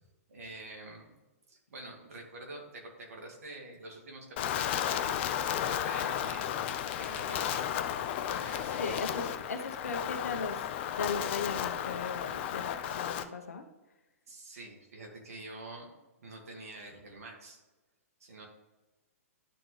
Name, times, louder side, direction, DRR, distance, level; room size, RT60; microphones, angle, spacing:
voice 1, 0.3-1.1 1.5-7.7 8.2-9.1 14.3-15.9 16.2-17.6 18.2-18.5, right 2 dB, 75° right, 0 dB, 2.0 m, -47 dB
Wind, 4.4-13.2, left 10 dB, 50° left, 0.5 m, -33 dB
voice 2, 8.6-13.6, left 4 dB, 80° left, 6 dB, 1.0 m, -38 dB
11.5 x 3.8 x 3.2 m, 1.1 s
hypercardioid pair, 125°, 8 cm